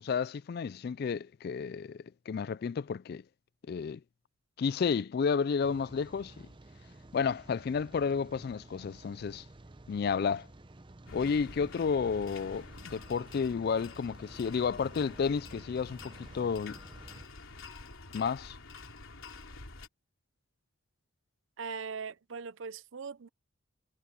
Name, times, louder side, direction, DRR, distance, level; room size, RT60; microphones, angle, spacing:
voice 1, 0.0-3.2 3.7-4.0 4.6-6.5 7.1-9.4 9.9-10.5 11.1-16.8 18.1-18.6, left 6 dB, 50° left, 0.3 m, -31 dB
Rain, 5.6-17.3, right 2 dB, 25° right, 0.7 m, -52 dB
sound 1, 11.1-19.9, left 3 dB, 80° left, 3.4 m, -49 dB
voice 2, 21.6-23.3, right 5 dB, 65° right, 0.6 m, -40 dB
head